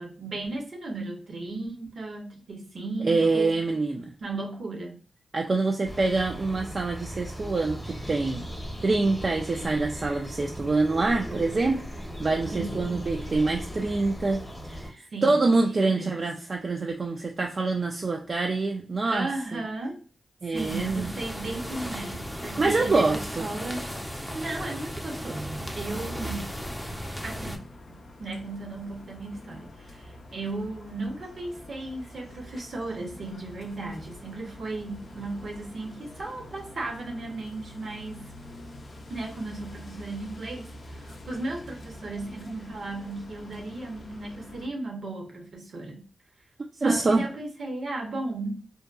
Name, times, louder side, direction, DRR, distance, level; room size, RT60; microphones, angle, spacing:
voice 1, 0.0-3.5 4.2-5.0 12.5-12.8 15.1-16.2 19.0-20.0 20.5-26.5 27.2-38.3 39.1-46.0 46.7-48.6, right 2 dB, 70° right, 0.7 m, -35 dB
voice 2, 3.0-4.1 5.3-8.4 8.8-19.6 20.4-21.1 22.6-23.5 46.8-47.3, right 3 dB, 50° right, 0.4 m, -26 dB
sound 1, 5.8-14.9, equal, 25° left, 0.9 m, -38 dB
sound 2, 20.5-27.6, equal, 5° left, 0.5 m, -36 dB
sound 3, 26.3-44.7, left 1 dB, 60° left, 0.4 m, -46 dB
2.7 x 2.2 x 2.3 m
cardioid pair, 45°, 0 cm